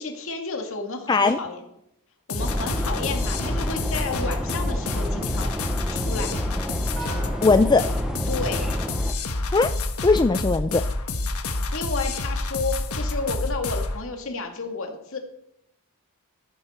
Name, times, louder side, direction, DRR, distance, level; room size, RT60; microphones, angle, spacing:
voice 1, 0.0-1.6 2.3-6.3 8.3-8.6 11.7-15.2, left 3 dB, 65° left, 3 dB, 2.2 m, -31 dB
voice 2, 1.1-1.4 7.4-7.9 9.5-9.7 10.0-10.8, left 3 dB, 20° left, 9 dB, 0.4 m, -19 dB
sound 1, 2.3-14.0, left 2 dB, 85° left, 1.3 m, -28 dB
sound 2, 2.4-9.1, equal, 5° right, 0.7 m, -31 dB
sound 3, 7.0-9.5, right 2 dB, 75° right, 6.3 m, -42 dB
13.5 x 11.0 x 4.4 m, 0.79 s
head